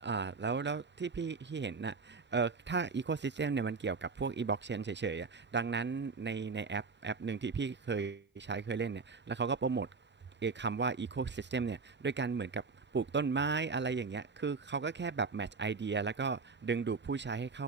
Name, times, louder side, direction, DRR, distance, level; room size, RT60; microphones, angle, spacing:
voice 1, 0.0-1.9 2.3-5.3 5.5-9.0 9.3-9.9 10.4-11.8 12.0-12.6 12.9-17.6, right 5 dB, 30° right, 0.5 m, -34 dB
wide cardioid pair, 110°, 38 cm